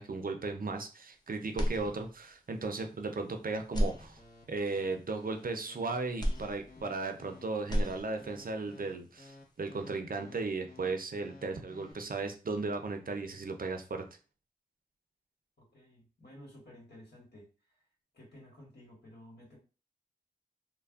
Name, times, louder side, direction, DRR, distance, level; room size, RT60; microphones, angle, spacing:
voice 1, 0.0-4.2 4.5-14.0, right 3 dB, 55° right, 5 dB, 0.5 m, -36 dB
sound 1, 1.5-2.4 2.9-3.0 3.6-4.7 6.2-7.3 7.6-8.5, equal, 25° left, 0.6 m, -34 dB
sound 2, 4.2-11.9, left 3 dB, 60° left, 0.9 m, -54 dB
voice 2, 15.6-17.5 18.1-19.6, left 1 dB, 75° left, -3 dB, 1.5 m, -54 dB
3.2 x 2.1 x 2.4 m, 0.34 s
wide cardioid pair, 55°, 17 cm